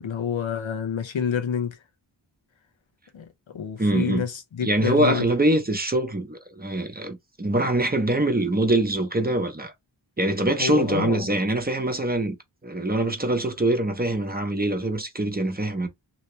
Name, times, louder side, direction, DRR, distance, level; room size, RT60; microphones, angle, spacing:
voice 1, 0.0-1.8 3.1-3.2 3.5-5.3 10.6-11.3, left 7 dB, 85° left, 0.8 m, -28 dB
voice 2, 3.8-4.2 4.6-9.7 10.2-12.4 12.6-15.9, right 1 dB, 20° right, 0.8 m, -24 dB
2.9 x 2.9 x 3.1 m
wide cardioid pair, 80°, 45 cm